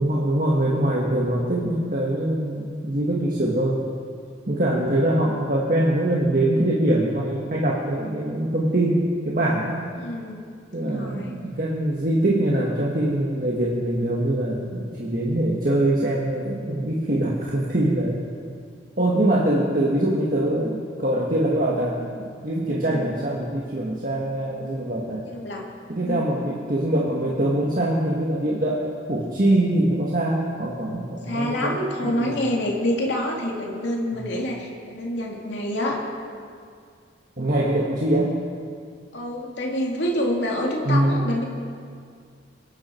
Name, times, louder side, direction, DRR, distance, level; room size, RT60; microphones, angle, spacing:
voice 1, 0.0-3.8 4.5-9.8 10.7-18.2 19.0-25.2 25.9-32.4 34.1-34.2 37.4-38.4 40.8-41.2, right 1 dB, 45° right, -4 dB, 1.7 m, -23 dB
voice 2, 10.0-10.5 10.8-11.3 22.9-23.1 25.2-25.7 26.0-26.3 31.2-36.0 39.1-41.4, left 1 dB, 70° left, -2 dB, 2.5 m, -27 dB
24.5 x 11.0 x 4.5 m, 2.2 s
head